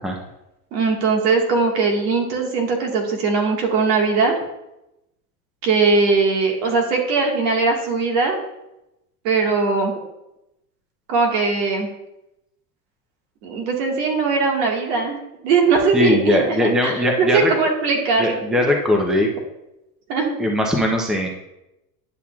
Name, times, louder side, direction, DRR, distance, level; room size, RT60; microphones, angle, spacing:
voice 1, 0.7-4.4 5.6-8.4 9.2-9.9 11.1-11.9 13.4-15.2 15.4-18.7 20.1-20.4, right 4 dB, 70° right, 1 dB, 1.9 m, -20 dB
voice 2, 15.9-17.5 18.2-19.3 20.4-21.3, left 1 dB, ahead, 2 dB, 0.7 m, -19 dB
10.5 x 5.7 x 2.4 m, 0.90 s
supercardioid pair, 110°, 49 cm